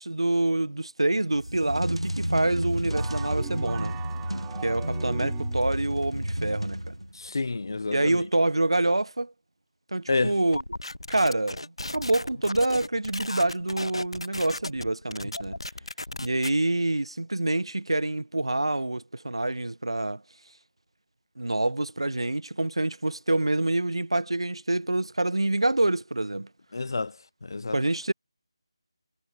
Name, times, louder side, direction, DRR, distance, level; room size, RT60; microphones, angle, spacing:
voice 1, 0.0-3.9 4.6-6.9 7.9-9.3 9.9-10.6 11.1-15.6 16.2-20.2 21.4-26.5 27.7-28.1, right 2 dB, 70° right, 1.5 m, -26 dB
sound 1, 1.3-7.3, equal, 85° right, 2.7 m, -31 dB
sound 2, 2.9-5.8, right 31 dB, 10° right, 0.3 m, -42 dB
voice 2, 7.1-8.2 10.1-10.4 26.7-27.2 27.4-27.8, left 3 dB, 50° left, 0.5 m, -29 dB
sound 3, 10.5-16.5, left 1 dB, 70° left, 1.2 m, -36 dB
figure-of-eight pair, 160°, 3 cm